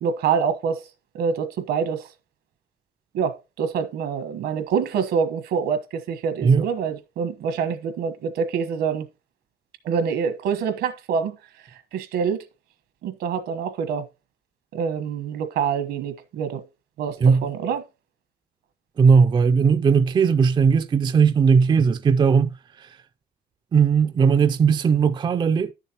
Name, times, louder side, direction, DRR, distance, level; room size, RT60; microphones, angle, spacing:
voice 1, 0.0-0.9 1.1-2.1 3.1-9.1 9.8-11.4 11.9-12.4 13.0-14.1 14.7-16.6 17.0-17.8, right 6 dB, 75° right, 1.2 m, -26 dB
voice 2, 19.0-22.5 22.8-23.0 23.7-25.7, right 6 dB, 25° right, 0.4 m, -18 dB
11.5 x 6.7 x 2.9 m
cardioid pair, 110°, 17 cm